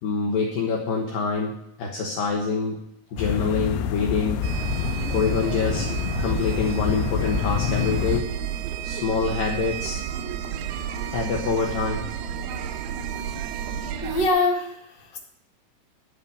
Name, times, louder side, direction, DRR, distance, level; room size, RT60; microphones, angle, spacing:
voice 1, 0.0-2.8 3.1-4.4 5.1-5.9 6.2-8.4 8.8-10.0 11.1-12.1, left 4 dB, 70° left, 0 dB, 2.3 m, -26 dB
sound 1, 3.2-8.2, left 11 dB, 90° left, 3.1 m, -27 dB
sound 2, 4.4-14.3, right 9 dB, 80° right, 2.9 m, -31 dB
voice 2, 13.6-15.2, left 2 dB, 35° left, -2 dB, 2.1 m, -25 dB
11.5 x 5.6 x 8.2 m, 0.78 s
omnidirectional pair, 5.5 m